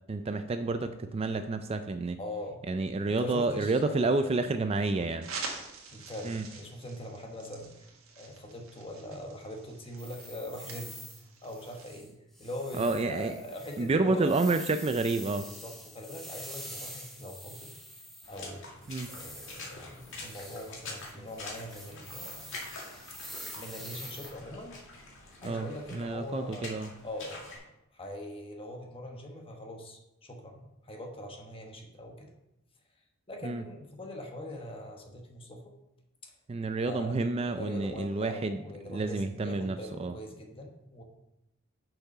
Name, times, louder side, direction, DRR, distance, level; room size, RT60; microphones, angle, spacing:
voice 1, 0.1-2.2 2.7-5.3 6.2-6.4 12.8-13.3 13.8-15.5 18.9-19.1 25.4-26.9 33.4-33.6 36.5-38.6 38.9-40.1, right 3 dB, 30° right, 9 dB, 0.3 m, -29 dB
voice 2, 2.2-2.6 3.1-4.3 5.9-7.9 8.2-11.0 11.4-12.1 12.4-14.3 15.4-18.6 19.1-22.5 23.5-24.8 25.4-27.4 27.9-32.3 33.3-35.7 36.2-36.3 36.8-37.1 37.5-41.0, left 1 dB, 25° left, 2 dB, 1.2 m, -42 dB
sound 1, 5.2-12.0, right 4 dB, 75° right, 1.7 m, -45 dB
sound 2, 10.0-11.2 11.5-12.1 12.3-18.5 18.8-24.3, equal, ahead, 1.1 m, -46 dB
Water / Splash splatter, 18.2-27.6, left 2 dB, 60° left, 2.2 m, -46 dB
6.8 x 5.9 x 5.5 m, 0.89 s
head